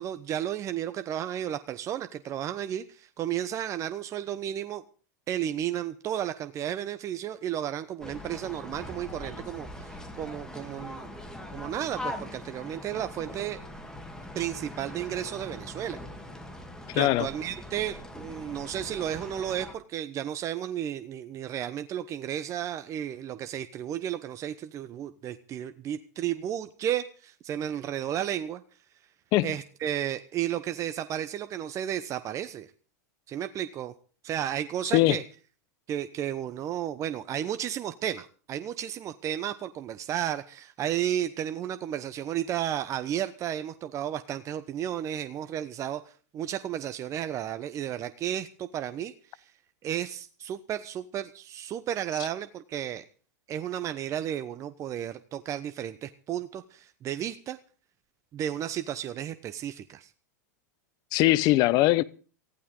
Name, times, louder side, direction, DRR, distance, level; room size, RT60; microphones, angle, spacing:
voice 1, 0.0-4.8 5.3-11.1 11.5-13.6 14.3-16.0 16.9-28.6 29.4-32.7 33.3-33.9 34.2-35.2 35.9-49.4 49.8-53.0 53.5-57.6 58.3-60.1, right 10 dB, 35° right, 1.0 m, -33 dB
sound 1, 8.0-19.7, left 1 dB, 5° left, 3.0 m, -41 dB
voice 2, 16.9-17.3 29.3-29.5 34.9-35.2 61.1-62.0, left 17 dB, 45° left, 0.9 m, -21 dB
19.5 x 15.0 x 3.8 m
hypercardioid pair, 110°, 9 cm